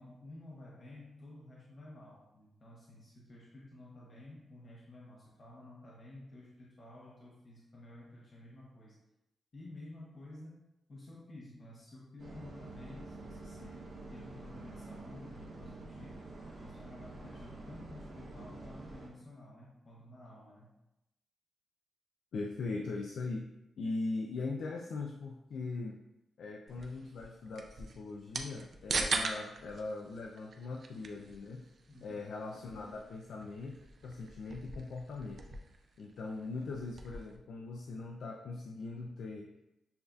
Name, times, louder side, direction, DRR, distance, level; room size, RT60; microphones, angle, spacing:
voice 1, 0.0-9.0 9.5-13.9 14.1-16.3 16.6-20.7 31.9-32.3, left 1 dB, 50° left, -5 dB, 0.8 m, -52 dB
sound 1, 12.2-19.1, right 2 dB, 75° right, 1.3 m, -48 dB
voice 2, 22.3-23.5 23.8-26.0 26.4-31.7 32.0-33.8 34.0-35.4 36.0-39.5, left 3 dB, 75° left, 1 dB, 0.3 m, -40 dB
sound 2, 26.7-37.4, right 4 dB, 55° right, 0.4 m, -42 dB
6.8 x 2.5 x 2.3 m, 0.90 s
cardioid pair, 85°, 0 cm